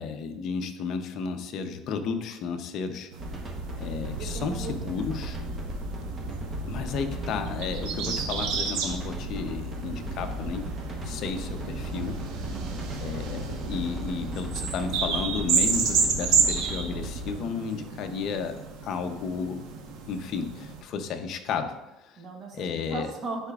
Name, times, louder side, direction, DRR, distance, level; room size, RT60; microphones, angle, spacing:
voice 1, 0.0-3.1 3.8-5.4 6.7-10.7 11.0-12.2 13.0-19.6 20.1-21.8 22.0-22.2 22.5-23.1, left 5 dB, 50° left, 6 dB, 0.7 m, -33 dB
sound 1, 3.1-20.8, right 6 dB, 80° right, 1.1 m, -32 dB
sound 2, 3.2-17.3, right 1 dB, 20° right, 1.0 m, -36 dB
voice 2, 4.2-4.9 12.4-12.8 22.2-23.5, right 3 dB, 35° right, 1 dB, 1.2 m, -38 dB
10.0 x 4.9 x 2.4 m, 0.95 s
cardioid pair, 140°, 0 cm